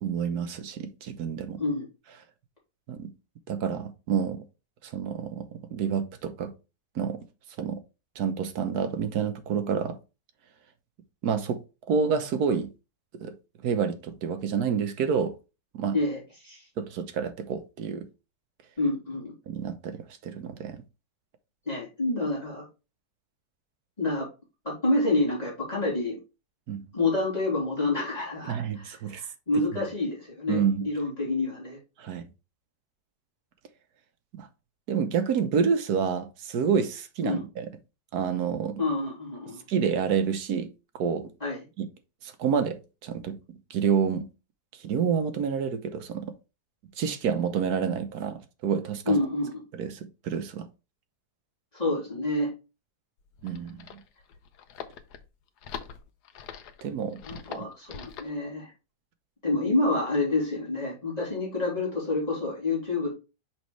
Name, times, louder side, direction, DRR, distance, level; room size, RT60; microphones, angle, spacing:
voice 1, 0.0-1.6 2.9-3.1 3.5-4.4 4.8-6.5 6.9-7.2 7.6-7.8 8.2-10.0 11.2-11.6 11.9-12.7 13.2-13.3 13.6-15.3 15.7-16.0 16.8-18.1 19.5-20.8 26.7-26.8 28.5-29.2 30.5-30.9 32.0-32.3 34.3-34.5 34.9-37.7 38.1-38.8 39.7-40.7 40.9-41.3 41.8-41.9 42.2-43.4 43.7-44.3 44.8-46.3 47.0-49.2 49.7-50.0 50.2-50.7 53.4-54.0 56.8-57.7, right 6 dB, 75° right, 1.3 m, -28 dB
voice 2, 15.9-16.7 18.8-19.3 21.6-22.7 24.0-24.3 24.6-26.2 26.9-31.8 37.2-37.4 38.8-39.6 41.4-41.6 49.0-49.6 51.7-52.5 57.2-58.7 59.4-63.1, left 2 dB, 25° left, 3.4 m, -28 dB
sound 1, 53.2-58.4, left 7 dB, 90° left, 1.3 m, -43 dB
6.2 x 5.3 x 3.1 m
omnidirectional pair, 1.7 m